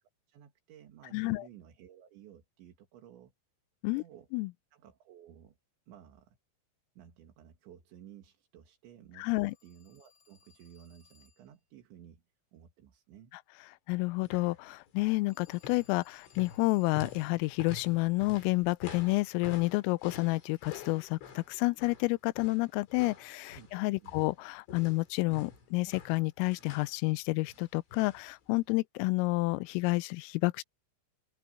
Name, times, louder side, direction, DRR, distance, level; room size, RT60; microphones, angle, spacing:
voice 1, 0.3-3.3 4.0-4.3 4.7-5.6 5.9-6.4 7.0-12.2 12.5-13.3 23.5-23.7 23.9-24.2, right 10 dB, 65° right, 4.4 m, -55 dB
voice 2, 1.1-1.5 3.8-4.0 4.3-4.5 9.2-9.5 13.9-30.6, left 23 dB, 85° left, 3.2 m, -30 dB
Telephone, 9.3-11.6 15.3-17.5, left 7 dB, 25° left, 6.8 m, -64 dB
sound 1, 14.2-14.6 14.9-15.2 15.5-24.4 24.7-27.0 27.5-28.3 28.6-28.7, left 5 dB, 65° left, 7.3 m, -48 dB
open air
omnidirectional pair, 5.9 m